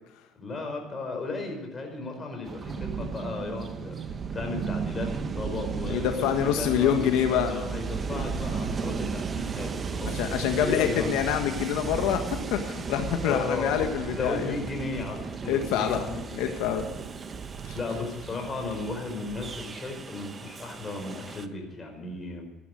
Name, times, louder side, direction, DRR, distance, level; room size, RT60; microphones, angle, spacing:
voice 1, 0.4-4.0 4.3-11.4 13.2-16.8 17.7-22.4, left 3 dB, 25° left, 3 dB, 4.7 m, -35 dB
Train, 2.4-21.5, right 5 dB, 30° right, 0.9 m, -37 dB
sound 1, 2.6-19.6, right 6 dB, 45° right, 1.4 m, -38 dB
voice 2, 5.9-7.7 10.1-14.5 15.5-16.0 16.4-16.8 17.7-17.8, left 9 dB, 90° left, 5 dB, 1.5 m, -26 dB
sound 2, 8.1-11.1, right 1 dB, 65° left, 3.1 m, -45 dB
15.0 x 11.0 x 6.3 m, 1.1 s
cardioid pair, 125°, 0 cm